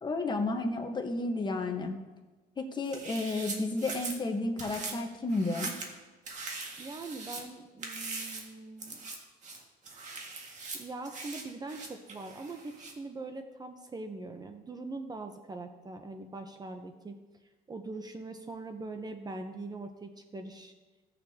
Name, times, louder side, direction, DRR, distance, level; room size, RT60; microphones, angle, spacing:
voice 1, 0.0-2.0 2.6-5.7, left 2 dB, 25° left, 4 dB, 1.1 m, -32 dB
sound 1, 2.8-4.2 4.6-4.9 5.3-5.9 6.3-7.4 7.8-8.5 8.8-9.2 9.4-12.9, right 3 dB, 45° right, 1.8 m, -41 dB
voice 2, 6.8-9.0 10.8-17.2 17.7-20.7, right 3 dB, 25° right, 6 dB, 0.7 m, -42 dB
16.5 x 6.7 x 2.8 m, 1.2 s
cardioid pair, 110°, 17 cm